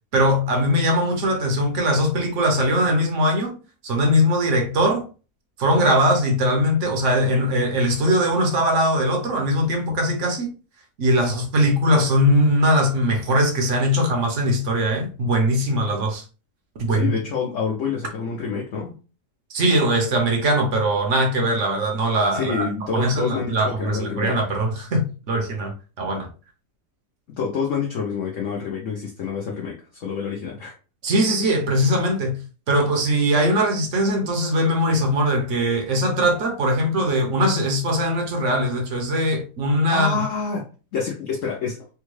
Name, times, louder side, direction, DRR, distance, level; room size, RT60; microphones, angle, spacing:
voice 1, 0.1-3.6 3.8-5.1 5.6-10.5 11.0-16.2 16.8-17.1 19.5-22.7 22.9-26.3 31.0-32.4 32.7-40.2, equal, 55° right, 1.0 m, -21 dB
voice 2, 16.9-18.9 22.3-24.4 27.4-30.7 39.9-41.9, left 6 dB, 60° left, 0.9 m, -27 dB
3.5 x 2.2 x 3.1 m
omnidirectional pair, 1.7 m